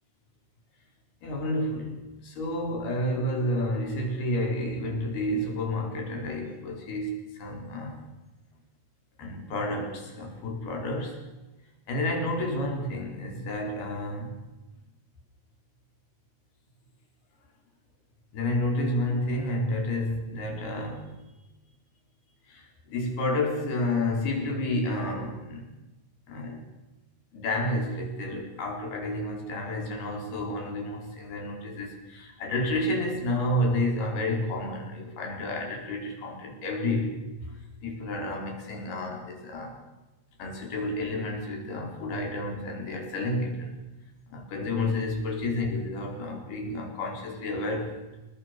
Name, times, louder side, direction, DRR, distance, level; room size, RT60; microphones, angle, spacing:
voice 1, 1.2-2.0 2.2-8.0 9.2-11.2 11.9-14.4 18.3-21.1 22.5-25.7 26.3-26.6 27.3-39.8 40.4-43.8 44.3-48.0, left 1 dB, 75° left, 2 dB, 6.5 m, -30 dB
28.5 x 20.0 x 6.8 m, 1.1 s
omnidirectional pair, 4.6 m